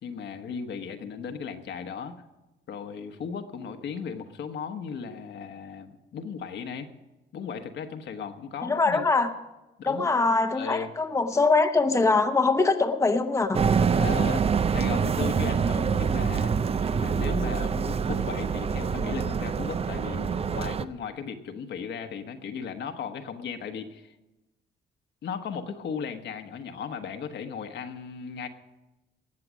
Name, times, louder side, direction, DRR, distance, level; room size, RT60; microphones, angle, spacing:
voice 1, 0.0-2.2 2.7-6.9 7.3-9.1 9.8-10.1 10.5-10.9 13.9-16.5 16.9-24.1 25.2-28.5, left 6 dB, 65° left, 6 dB, 1.2 m, -36 dB
voice 2, 8.6-9.3 9.8-13.6, left 3 dB, 15° left, 6 dB, 0.8 m, -23 dB
sound 1, 13.5-20.8, right 6 dB, 30° right, 0.5 m, -26 dB
19.5 x 7.7 x 6.2 m, 1.0 s
cardioid pair, 100°, 19 cm